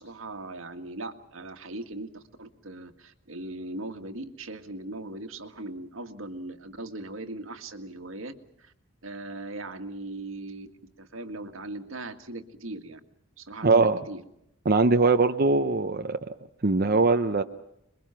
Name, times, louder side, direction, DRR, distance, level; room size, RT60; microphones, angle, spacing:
voice 1, 0.0-8.7 9.0-10.7 11.0-13.0 13.4-14.2, right 2 dB, 80° right, 7 dB, 1.9 m, -39 dB
voice 2, 13.6-14.0 14.7-16.2 16.6-17.4, right 3 dB, 50° right, 6 dB, 0.8 m, -21 dB
26.5 x 22.5 x 5.8 m, 0.79 s
head